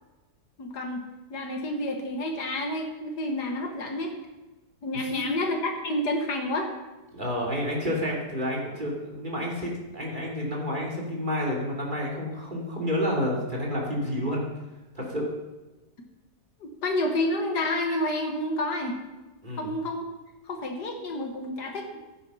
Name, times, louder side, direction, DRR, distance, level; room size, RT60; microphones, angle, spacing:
voice 1, 0.6-4.1 4.8-6.7 16.6-19.0 19.6-20.0 20.5-21.9, left 1 dB, 70° left, 4 dB, 2.0 m, -29 dB
voice 2, 5.0-5.3 7.1-14.4 14.9-15.3 19.4-19.7, equal, 25° right, -3 dB, 3.0 m, -30 dB
15.5 x 8.7 x 5.5 m, 1.1 s
omnidirectional pair, 1.9 m